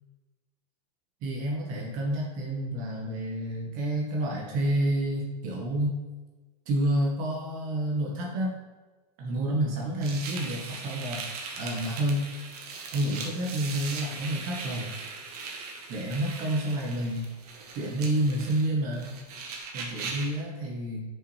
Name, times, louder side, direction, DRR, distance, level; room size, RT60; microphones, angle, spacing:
voice 1, 1.2-6.0 6.6-8.6 9.2-11.2 11.6-12.3 12.9-14.9 15.9-17.3 17.7-19.1 19.7-21.0, right 1 dB, 40° right, -2 dB, 1.3 m, -29 dB
sound 1, 10.0-20.4, right 4 dB, 70° right, 1.4 m, -39 dB
6.2 x 5.2 x 3.3 m, 1.2 s
supercardioid pair, 140°, 21 cm